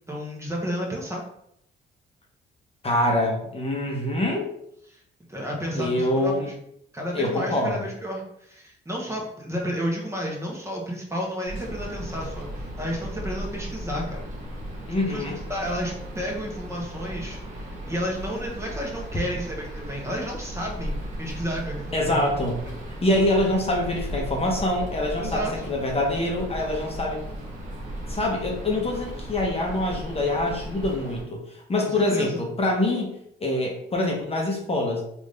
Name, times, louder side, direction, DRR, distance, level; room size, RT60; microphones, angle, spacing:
voice 1, 0.1-1.2 4.9-5.0 5.3-6.5 6.9-14.2 15.1-22.3 22.6-22.7 25.2-25.7 31.8-32.4, equal, 15° right, -2 dB, 1.0 m, -32 dB
voice 2, 2.8-4.5 5.8-6.5 7.1-7.9 14.9-15.4 21.9-22.6 23.0-27.2 28.1-33.1 33.4-35.0, left 1 dB, 30° left, 0 dB, 0.8 m, -25 dB
sound 1, 11.5-31.2, right 1 dB, 40° right, 1.5 m, -36 dB
3.5 x 2.6 x 3.2 m, 0.73 s
cardioid pair, 90°, 20 cm